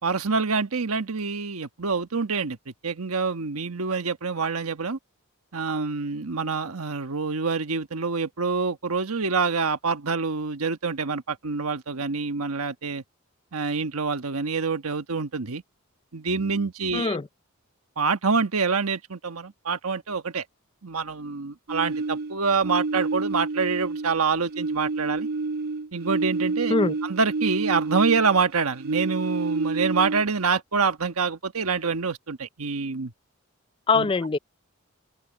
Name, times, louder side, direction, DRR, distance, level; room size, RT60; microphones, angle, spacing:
voice 1, 0.0-2.6 2.8-5.0 5.5-13.0 13.5-15.6 16.1-17.2 18.0-20.4 20.8-25.3 25.9-26.7 27.0-33.1 33.9-34.1, right 4 dB, 90° right, 1.3 m, -26 dB
voice 2, 16.9-17.2 26.7-26.9 33.9-34.4, left 4 dB, 25° left, 0.4 m, -22 dB
sound 1, 21.7-24.2 24.5-28.4 28.8-30.4, right 3 dB, 45° right, 0.5 m, -28 dB
open air
head